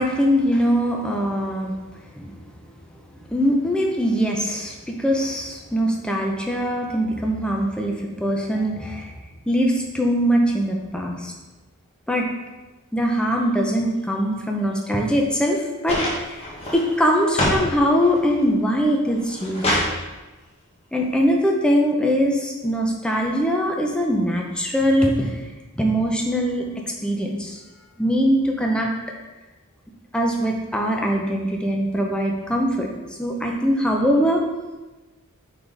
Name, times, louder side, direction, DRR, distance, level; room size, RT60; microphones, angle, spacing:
voice 1, 0.0-2.4 3.3-9.1 9.5-11.3 12.1-12.3 12.9-16.4 16.7-19.8 20.9-25.4 25.7-26.7 27.0-27.6 28.0-28.9 30.1-32.9 33.2-34.4, equal, 5° left, 0 dB, 0.7 m, -22 dB
sound 1, 15.9-17.7 18.0-18.6 19.1-19.9 21.1-21.2, left 1 dB, 25° left, 1.3 m, -25 dB
8.5 x 4.0 x 3.4 m, 1.2 s
head